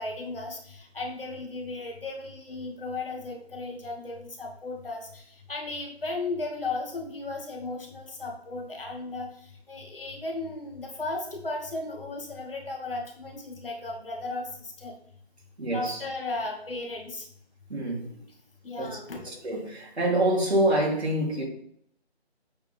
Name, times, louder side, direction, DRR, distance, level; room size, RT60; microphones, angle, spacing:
voice 1, 0.0-9.3 9.7-14.9 15.7-17.2 18.6-19.2, left 2 dB, 55° left, 2.5 m, -35 dB
voice 2, 15.6-16.0 17.7-18.1 18.8-19.0 19.4-21.5, right 1 dB, 75° right, 3.8 m, -26 dB
8.7 x 5.9 x 3.7 m
figure-of-eight pair, 165°, 33 cm